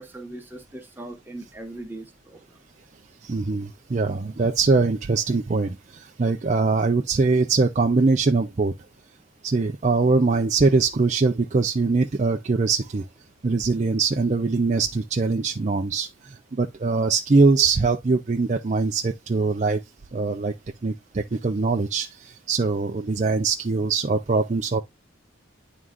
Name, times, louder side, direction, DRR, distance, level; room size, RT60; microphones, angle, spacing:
voice 1, 0.0-2.6, right 1 dB, 10° right, 1.2 m, -39 dB
voice 2, 3.2-8.7 9.4-13.0 13.4-19.8 20.1-20.5 20.8-24.8, right 4 dB, 35° right, 0.4 m, -22 dB
11.0 x 3.7 x 2.3 m
head